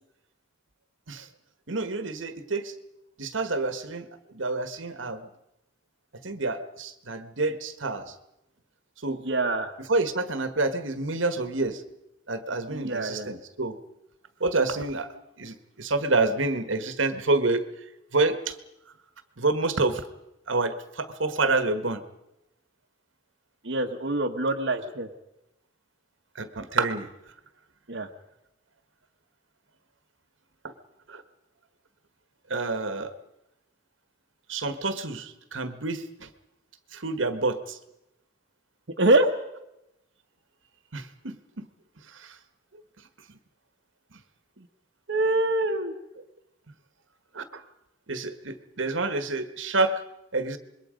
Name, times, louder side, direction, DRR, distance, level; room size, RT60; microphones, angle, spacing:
voice 1, 1.7-2.7 3.2-4.1 4.3-5.3 6.2-8.1 9.0-9.2 9.9-11.8 12.3-13.8 14.4-15.1 15.4-17.6 18.1-18.6 19.4-20.0 20.5-22.0 26.4-27.1 30.6-30.7 31.1-31.2 32.5-33.1 34.5-36.3 36.9-37.8 40.9-41.6 47.3-47.4 48.1-50.0 50.3-50.6, right 3 dB, 80° right, 10 dB, 1.5 m, -28 dB
voice 2, 9.1-9.7 12.7-13.3 23.6-25.1 27.9-28.1 39.0-39.3 44.6-44.7 45.1-45.9, right 2 dB, 60° right, 1 dB, 1.2 m, -25 dB
26.0 x 22.0 x 5.2 m, 0.89 s
head